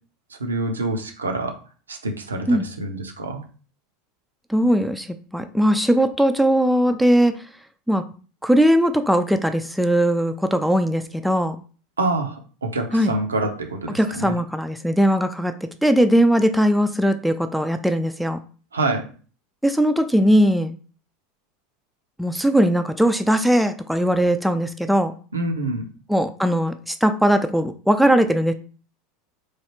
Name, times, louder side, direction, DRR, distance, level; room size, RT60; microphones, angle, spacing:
voice 1, 0.3-1.6 1.9-3.4 12.0-14.3 18.7-19.1 25.3-25.9, right 2 dB, 85° right, 4 dB, 0.5 m, -26 dB
voice 2, 4.5-7.3 7.9-8.0 8.4-11.6 12.9-13.1 13.9-18.4 19.6-20.7 22.2-25.1 26.1-28.5, equal, ahead, 8 dB, 0.3 m, -19 dB
3.1 x 2.3 x 3.0 m, 0.39 s
hypercardioid pair, 80°, 0 cm